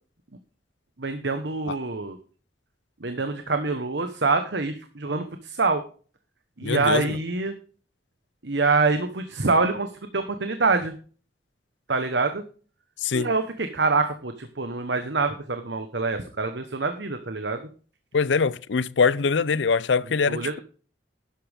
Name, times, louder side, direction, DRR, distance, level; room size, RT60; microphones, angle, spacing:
voice 1, 1.0-2.2 3.0-5.8 6.6-7.5 8.4-10.9 11.9-12.4 13.1-17.6 20.3-20.6, right 3 dB, 70° right, 1.2 m, -25 dB
voice 2, 6.6-7.2 13.0-13.3 18.1-20.6, left 5 dB, 85° left, 0.6 m, -23 dB
11.5 x 11.5 x 3.6 m
head